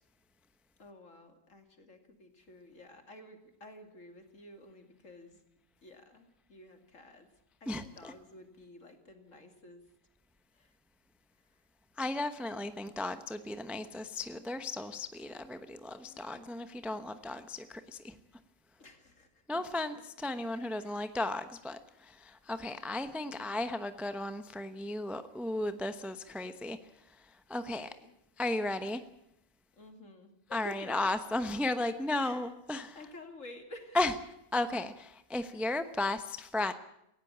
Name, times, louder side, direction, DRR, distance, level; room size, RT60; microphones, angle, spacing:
voice 1, 0.8-5.4 5.8-7.3 7.6-9.8 10.5-10.7 12.5-13.0 14.9-15.0 16.0-16.7 18.8-19.9 20.4-21.1 23.2-23.6 27.6-28.1 29.8-31.1 32.2-32.5 32.9-34.0 35.3-35.7, left 1 dB, 45° left, 5 dB, 3.0 m, -52 dB
voice 2, 7.7-8.1 12.0-18.2 19.5-26.8 27.5-27.9 28.4-29.0 30.5-33.0 33.9-34.1 34.5-36.7, left 2 dB, ahead, 10 dB, 0.5 m, -35 dB
19.0 x 16.0 x 8.7 m, 0.81 s
omnidirectional pair, 1.8 m